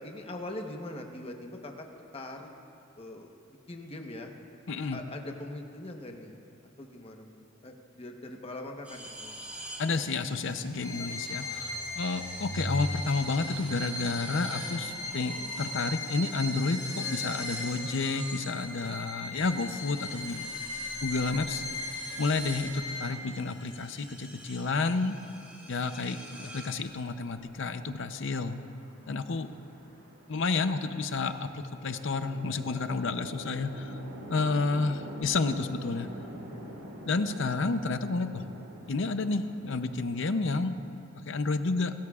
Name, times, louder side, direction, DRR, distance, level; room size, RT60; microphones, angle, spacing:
voice 1, 0.0-1.9 2.1-2.5 2.9-3.3 3.7-4.3 4.9-6.4 6.8-9.5, left 1 dB, 30° left, 3 dB, 1.1 m, -42 dB
voice 2, 4.7-5.0 9.8-20.5 21.0-21.6 22.2-25.2 25.7-28.6 29.1-29.5 30.3-34.0 34.3-36.1 37.1-38.4 38.9-40.7 41.2-41.9, left 3 dB, 65° left, 10 dB, 0.6 m, -30 dB
sound 1, 8.8-19.0 19.4-27.2, equal, 5° right, 2.0 m, -44 dB
Bowed string instrument, 10.8-23.3, left 2 dB, 90° left, 2.3 m, -38 dB
Chatter / Traffic noise roadway noise / Train, 27.0-40.5, equal, 90° right, 2.4 m, -46 dB
28.5 x 13.5 x 2.4 m, 2.8 s
head